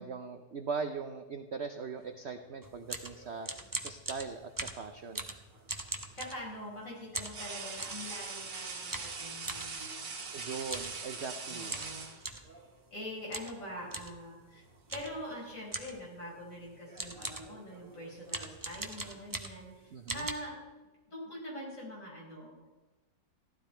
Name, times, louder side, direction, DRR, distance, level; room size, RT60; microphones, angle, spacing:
voice 1, 0.0-3.5 3.8-5.3 10.3-11.8 19.9-20.3, right 5 dB, 60° right, 7 dB, 0.7 m, -40 dB
sound 1, 2.6-6.8 7.1-8.1 8.9-9.7 10.6-11.0 11.2-11.3 11.7-12.5 13.3-13.6 13.9-14.2 14.9-15.2 15.7-16.1 16.6-16.7 17.0-17.6 18.3-19.7 20.1-20.3, right 2 dB, 20° right, 0.5 m, -40 dB
sound 2, 2.9-3.8 5.5-5.7 7.2-12.7 13.9-14.1 14.5-15.2 15.5-15.9 16.7-19.3, right 4 dB, 80° right, 2.4 m, -44 dB
voice 2, 5.8-10.1 11.5-12.2 12.9-20.6 21.1-22.7, equal, 45° left, -4 dB, 5.5 m, -44 dB
15.5 x 12.0 x 4.4 m, 1.2 s
omnidirectional pair, 1.9 m